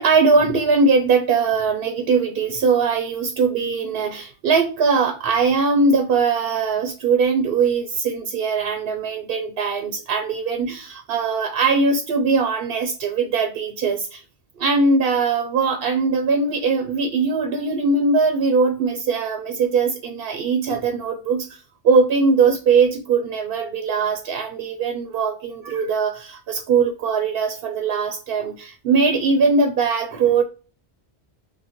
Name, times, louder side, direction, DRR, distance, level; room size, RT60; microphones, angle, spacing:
voice 1, 0.0-14.2 14.6-21.6 21.8-30.4, right 4 dB, 70° right, 6 dB, 0.8 m, -20 dB
5.9 x 2.1 x 2.9 m, 0.36 s
omnidirectional pair, 1.1 m